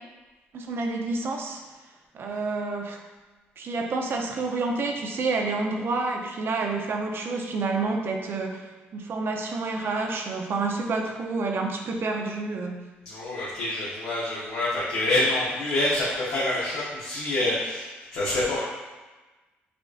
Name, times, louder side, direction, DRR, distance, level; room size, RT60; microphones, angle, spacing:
voice 1, 0.5-1.6 2.1-3.0 3.6-12.8, right 3 dB, 55° right, 2 dB, 0.6 m, -29 dB
voice 2, 13.0-17.8 18.1-18.6, left 1 dB, 85° left, -9 dB, 1.0 m, -26 dB
6.9 x 2.4 x 2.4 m, 1.2 s
supercardioid pair, 70°, 5 cm